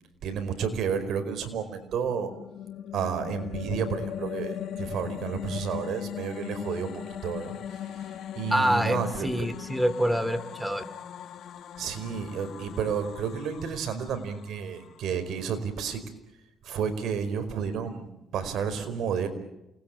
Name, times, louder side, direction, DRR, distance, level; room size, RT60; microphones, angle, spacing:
voice 1, 0.2-2.3 2.9-9.5 11.8-16.0 16.6-19.3, right 7 dB, 75° right, 9 dB, 4.9 m, -31 dB
sound 1, 1.7-15.1, left 10 dB, 70° left, 2.0 m, -39 dB
voice 2, 8.5-10.8, equal, 5° right, 14 dB, 2.9 m, -26 dB
28.5 x 21.0 x 8.9 m, 0.93 s
cardioid pair, 90°, 0 cm